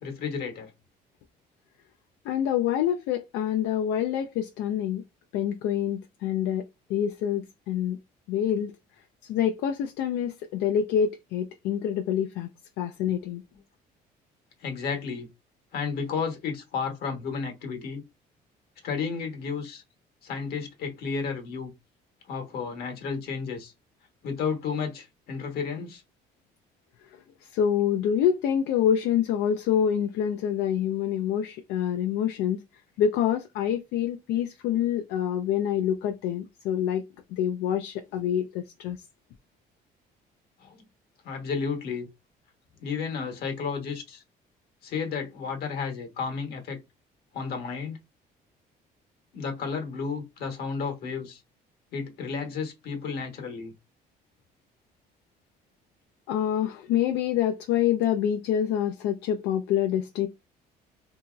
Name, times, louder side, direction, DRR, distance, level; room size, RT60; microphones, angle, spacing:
voice 1, 0.0-0.7 14.6-15.3 15.7-18.0 18.8-19.8 20.2-21.7 22.3-23.7 24.2-26.0 40.6-40.8 41.2-42.1 42.8-44.2 44.8-46.8 47.3-48.0 49.3-51.4 51.9-53.7, left 5 dB, 70° left, 1.1 m, -32 dB
voice 2, 2.2-5.0 5.3-8.0 8.3-8.7 9.2-12.5 12.8-13.4 27.1-32.6 33.0-37.0 37.3-39.1 56.3-60.3, left 9 dB, 85° left, 0.4 m, -26 dB
2.9 x 2.7 x 2.3 m
cardioid pair, 110°, 17 cm